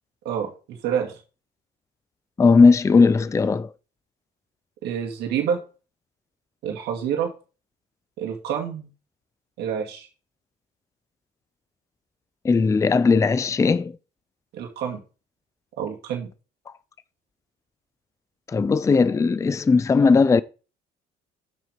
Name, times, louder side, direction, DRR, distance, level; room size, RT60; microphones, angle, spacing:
voice 1, 0.2-1.1 4.8-5.6 6.6-7.3 8.2-8.9 9.6-10.1 14.5-15.0 15.7-16.3, right 8 dB, 80° right, 2.2 m, -27 dB
voice 2, 2.4-3.7 12.4-14.0 18.5-20.4, left 4 dB, 20° left, 0.4 m, -18 dB
7.6 x 6.4 x 5.2 m
cardioid pair, 110°, 17 cm